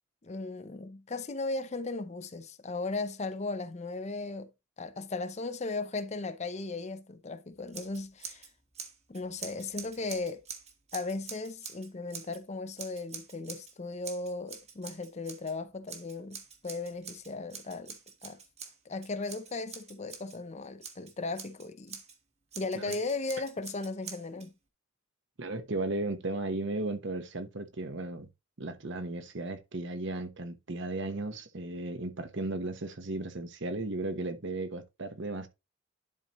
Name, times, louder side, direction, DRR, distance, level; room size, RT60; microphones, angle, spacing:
voice 1, 0.2-4.5 4.8-8.5 9.1-10.4 10.9-18.4 18.8-22.0 22.6-24.5, left 3 dB, 35° left, 0.6 m, -37 dB
Scissors, 7.7-8.5 8.7-12.4 12.8-13.7 14.0-15.5 15.9-20.4 20.8-22.1 22.5-24.5, right 6 dB, 30° right, 1.3 m, -45 dB
voice 2, 25.4-28.3 28.6-35.5, right 2 dB, 60° right, 1.1 m, -35 dB
11.0 x 4.3 x 3.0 m
head